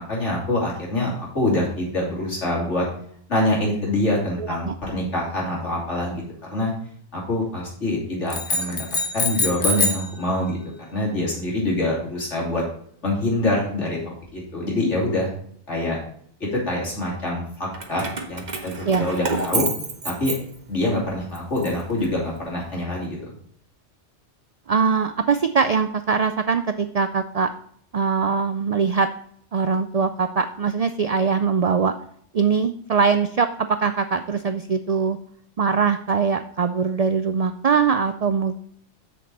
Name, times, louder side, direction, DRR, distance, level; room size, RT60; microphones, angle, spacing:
voice 1, 0.0-2.8 3.3-6.2 6.5-6.7 7.1-8.9 9.1-10.6 10.9-12.6 13.0-15.3 15.7-16.0 16.5-19.7 20.0-20.3 20.7-23.3, left 1 dB, 80° left, -3 dB, 3.3 m, -25 dB
voice 2, 4.4-4.8 18.8-19.1 24.7-27.5 27.9-29.1 29.5-31.9 32.3-35.2 35.6-38.6, right 5 dB, 65° right, 9 dB, 0.3 m, -22 dB
sound 1, 8.3-10.1, left 2 dB, 50° left, 1.4 m, -24 dB
Keys jangling, 17.7-20.9 21.3-22.6, right 3 dB, 40° right, 1.1 m, -30 dB
7.3 x 6.8 x 4.1 m, 0.63 s
omnidirectional pair, 1.2 m